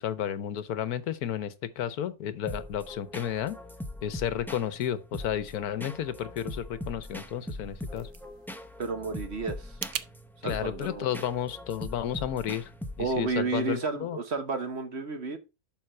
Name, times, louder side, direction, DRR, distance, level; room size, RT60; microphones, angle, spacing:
voice 1, 0.0-3.6 4.0-8.1 10.4-12.7 13.0-14.2, left 10 dB, 80° left, 1.3 m, -32 dB
sound 1, 2.5-13.3, left 1 dB, 5° left, 0.4 m, -41 dB
sound 2, 7.5-10.1, right 11 dB, 75° right, 1.1 m, -41 dB
voice 2, 8.8-9.8 10.4-11.1 13.0-15.4, right 4 dB, 50° right, 1.3 m, -31 dB
11.5 x 4.0 x 4.3 m
omnidirectional pair, 1.6 m